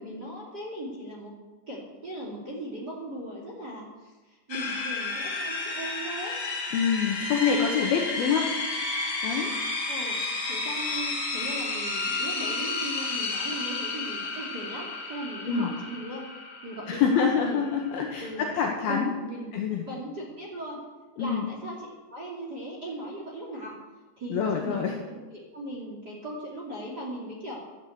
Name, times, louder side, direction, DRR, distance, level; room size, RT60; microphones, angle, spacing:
voice 1, 0.0-1.3 1.7-3.9 4.5-6.3 9.9-10.2 10.5-16.2 16.6-17.6 18.2-18.5 18.9-19.5 19.9-20.8 21.1-23.8 24.2-24.8 25.3-27.6, right 1 dB, 25° right, -3 dB, 2.6 m, -38 dB
sound 1, 4.5-18.5, left 3 dB, 40° left, 2.9 m, -32 dB
voice 2, 6.7-8.5 9.2-9.5 15.5-15.7 16.9-19.1 19.5-19.9 21.2-21.5 24.3-25.0, left 6 dB, 65° left, 1 dB, 2.7 m, -26 dB
14.0 x 10.5 x 8.1 m, 1.2 s
omnidirectional pair, 5.6 m